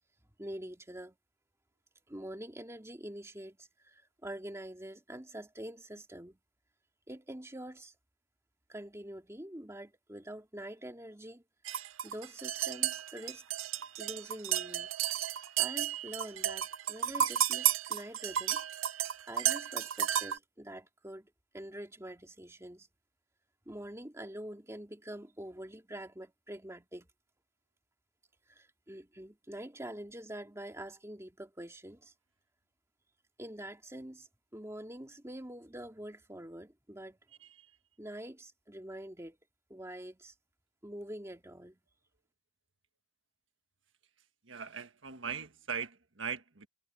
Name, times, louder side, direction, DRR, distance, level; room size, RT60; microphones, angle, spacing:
voice 1, 0.4-1.2 2.1-6.4 7.1-7.9 8.7-11.4 12.0-13.4 14.0-14.9 15.6-18.6 19.3-22.9 23.7-27.1 28.5-32.1 33.4-37.2 38.0-39.4 39.7-40.3 40.8-41.8, right 1 dB, 15° right, 2.4 m, -45 dB
sound 1, 11.6-20.4, right 10 dB, 90° right, 0.7 m, -32 dB
voice 2, 44.4-46.7, right 6 dB, 65° right, 1.6 m, -40 dB
head